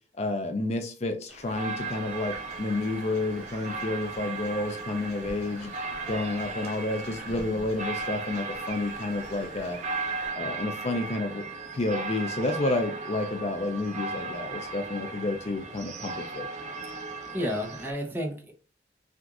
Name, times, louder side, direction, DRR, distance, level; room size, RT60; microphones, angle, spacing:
voice 1, 0.2-5.7 6.1-9.8 10.4-11.4 11.7-16.5, left 2 dB, 35° left, 0.5 m, -30 dB
sound 1, 1.3-10.3, right 1 dB, 65° right, 1.7 m, -48 dB
sound 2, 1.5-17.9, right 3 dB, 40° right, 0.6 m, -37 dB
sound 3, 2.5-10.1, left 2 dB, 75° left, 2.2 m, -53 dB
voice 2, 17.3-18.5, equal, 10° right, 0.8 m, -32 dB
5.9 x 2.5 x 2.5 m
head